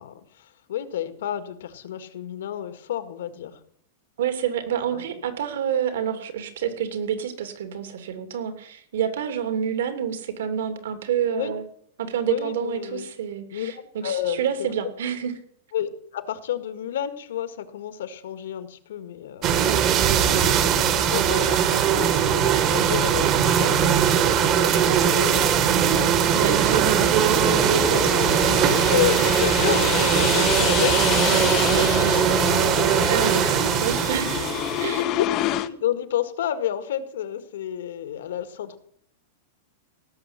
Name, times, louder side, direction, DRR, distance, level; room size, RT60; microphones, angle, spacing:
voice 1, 0.0-3.6 4.9-5.0 11.3-11.6 12.3-13.1 13.5-14.7 15.7-19.5 20.2-26.7 28.1-28.3 28.7-32.8 34.7-38.8, left 10 dB, 75° left, 11 dB, 1.7 m, -31 dB
voice 2, 4.2-11.6 12.0-15.3 19.6-19.8 26.4-28.6 33.1-34.5 34.8-35.1, right 8 dB, 70° right, 8 dB, 2.9 m, -28 dB
sound 1, 19.4-35.0, right 8 dB, 25° right, 1.2 m, -20 dB
sound 2, 25.6-35.7, left 13 dB, 25° left, 0.6 m, -29 dB
17.5 x 7.0 x 9.9 m, 0.66 s
supercardioid pair, 180°, 0 cm